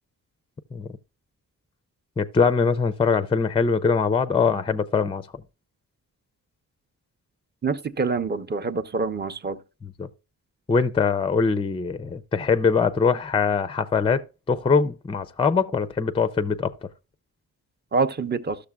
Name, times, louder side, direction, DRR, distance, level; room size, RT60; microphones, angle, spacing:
voice 1, 2.2-5.2 9.8-10.1 10.7-14.2 14.5-16.7, left 5 dB, 15° left, 0.4 m, -22 dB
voice 2, 7.6-9.6 17.9-18.6, right 4 dB, 30° right, 0.6 m, -26 dB
13.0 x 6.6 x 2.3 m
wide cardioid pair, 110°, 36 cm